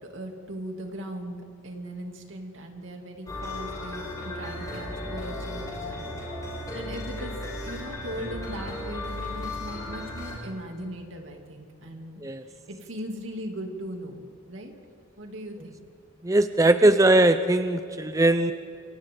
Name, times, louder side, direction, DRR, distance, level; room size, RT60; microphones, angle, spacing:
voice 1, 0.0-6.1 6.7-12.2 12.7-14.2 14.5-14.7 15.2-15.8, equal, 70° right, 2 dB, 2.9 m, -38 dB
sound 1, 3.3-10.4, left 1 dB, 20° left, 6.7 m, -35 dB
voice 2, 16.2-18.5, right 1 dB, 15° right, 9 dB, 0.5 m, -20 dB
28.5 x 24.5 x 3.9 m, 2.7 s
head